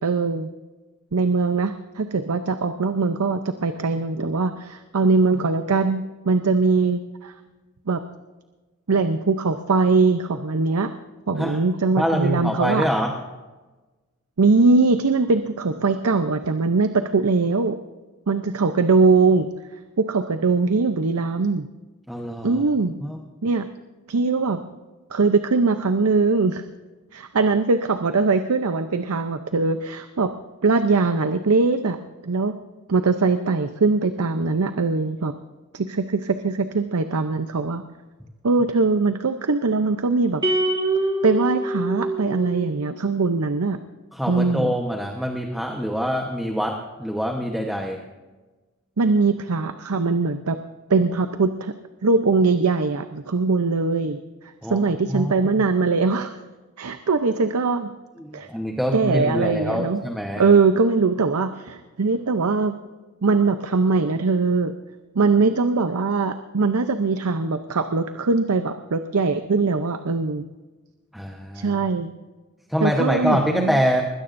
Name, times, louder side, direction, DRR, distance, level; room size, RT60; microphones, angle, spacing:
voice 1, 0.0-0.5 1.1-7.3 7.9-8.0 8.9-10.9 11.3-12.9 14.4-17.8 18.3-19.5 20.0-21.7 22.4-22.9 23.4-23.7 24.1-24.6 25.1-26.6 27.1-30.3 30.6-32.0 32.2-32.6 32.9-35.3 35.7-37.8 38.4-40.4 41.2-43.8 44.3-44.7 49.0-50.6 50.9-51.7 52.0-54.2 54.7-56.3 56.8-57.9 58.3-58.5 58.9-60.0 60.4-62.8 63.2-64.7 65.1-70.4 71.5-72.1 72.8-73.8, right 4 dB, 75° right, 9 dB, 0.7 m, -21 dB
voice 2, 12.0-13.1 22.1-22.6 23.0-23.2 44.1-48.0 54.6-55.6 58.2-60.4 71.1-71.8 72.7-74.0, equal, ahead, 1 dB, 1.1 m, -25 dB
sound 1, 40.4-42.9, right 1 dB, 20° right, 2.6 m, -25 dB
21.0 x 16.5 x 2.6 m, 1.2 s
head